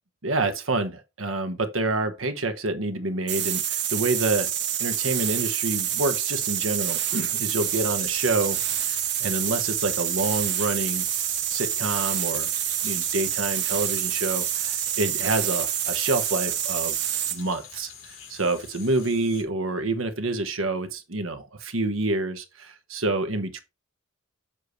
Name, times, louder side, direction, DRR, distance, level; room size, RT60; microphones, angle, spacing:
voice 1, 0.2-4.5 4.8-8.6 8.8-11.1 11.5-12.5 12.8-17.0 17.3-23.6, right 2 dB, 80° right, 1.2 m, -27 dB
sound 1, 3.3-17.4, right 10 dB, 60° right, 1.3 m, -27 dB
sound 2, 7.5-19.4, left 7 dB, 80° left, 2.1 m, -46 dB
7.5 x 6.6 x 3.2 m
head